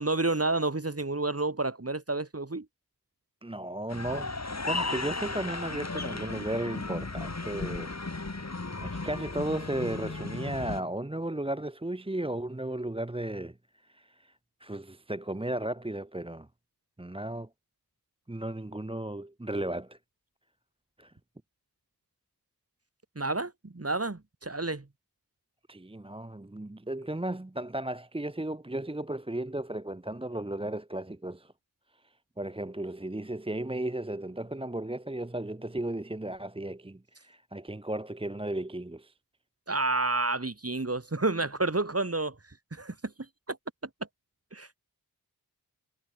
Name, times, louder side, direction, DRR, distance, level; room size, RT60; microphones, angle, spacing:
voice 1, 0.0-2.7 23.2-24.9 39.7-42.4 42.7-43.1 43.5-43.6 44.5-44.8, right 2 dB, 35° right, 3.6 m, -30 dB
voice 2, 3.4-16.5 17.0-17.5 18.3-20.0 21.0-21.1 25.7-31.5 32.0-39.1, right 1 dB, 15° right, 1.0 m, -35 dB
sound 1, 3.9-10.8, left 3 dB, 40° left, 3.7 m, -35 dB
wide cardioid pair, 55°, 40 cm